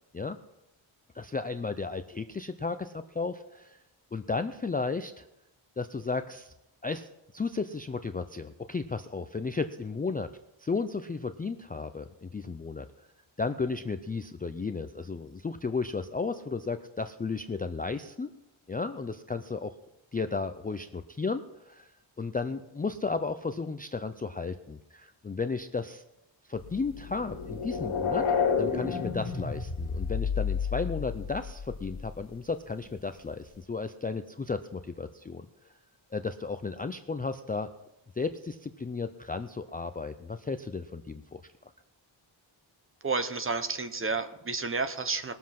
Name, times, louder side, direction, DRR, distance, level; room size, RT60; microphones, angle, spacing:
voice 1, 1.1-3.8 4.1-5.3 5.8-6.5 6.8-7.1 7.3-10.3 10.6-12.9 13.4-18.3 18.7-19.7 20.1-21.9 22.2-26.0 26.5-35.5 36.1-37.7 38.2-41.4, left 4 dB, 20° left, 8 dB, 0.3 m, -34 dB
sound 1, 26.7-32.1, left 6 dB, 80° left, 2.3 m, -30 dB
voice 2, 43.0-45.3, right 4 dB, 25° right, 11 dB, 0.8 m, -31 dB
19.5 x 7.4 x 5.8 m, 0.90 s
wide cardioid pair, 165°, 48 cm